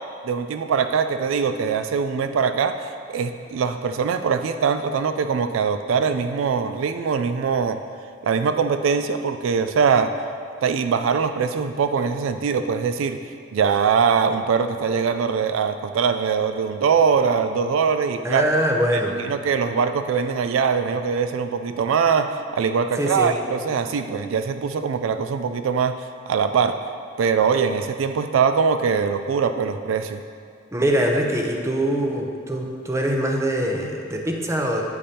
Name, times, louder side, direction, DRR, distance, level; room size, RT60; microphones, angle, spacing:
voice 1, 0.2-7.8 8.2-10.1 10.6-13.2 13.5-18.4 19.2-25.9 26.3-26.8 27.2-30.2, right 6 dB, 75° right, 9 dB, 0.3 m, -22 dB
voice 2, 18.2-19.2 23.0-23.3 30.7-34.8, right 1 dB, 15° right, 1 dB, 0.6 m, -23 dB
8.6 x 8.3 x 2.8 m, 2.3 s
head